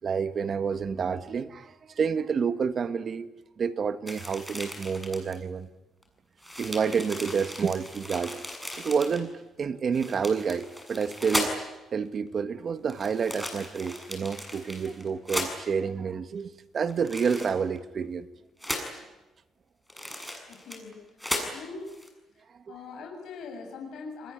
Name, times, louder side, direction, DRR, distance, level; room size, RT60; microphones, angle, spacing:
voice 1, 0.0-3.3 3.6-5.7 6.6-8.4 8.8-9.3 9.6-11.5 11.9-18.3 22.7-22.8, right 6 dB, 50° right, 10 dB, 1.7 m, -29 dB
sound 1, 4.1-5.3 6.0-6.1 6.4-9.2 9.9-11.7 12.9-15.5 16.9-17.8 18.6-19.0 19.9-20.9 21.2-21.5 21.9-22.1, left 1 dB, 5° left, 7.1 m, -36 dB
voice 2, 20.5-21.0 21.5-21.9 22.7-24.3, left 4 dB, 75° left, 2 dB, 7.1 m, -41 dB
28.5 x 20.5 x 9.6 m, 1.1 s
cardioid pair, 90°, 0 cm